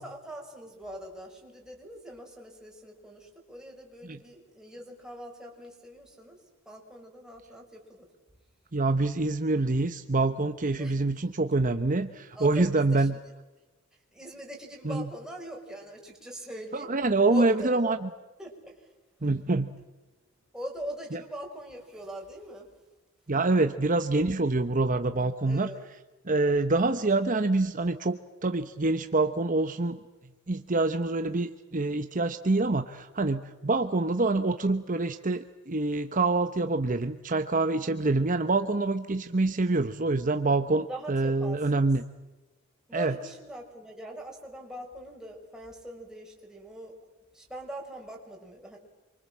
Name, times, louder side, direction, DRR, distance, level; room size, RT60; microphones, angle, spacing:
voice 1, 0.0-6.4 6.6-8.1 10.8-11.0 12.3-13.2 14.1-16.9 17.3-18.0 18.4-18.9 19.2-19.4 20.5-22.7 25.5-25.8 40.9-41.9 42.9-47.0 47.3-48.8, right 1 dB, 5° right, 0 dB, 5.8 m, -42 dB
voice 2, 8.7-13.1 14.8-15.1 16.7-18.1 19.2-19.7 21.1-21.2 23.3-25.7 26.2-30.0 30.5-42.0 42.9-43.1, right 2 dB, 40° right, 8 dB, 1.0 m, -26 dB
27.0 x 25.0 x 7.5 m, 1.1 s
head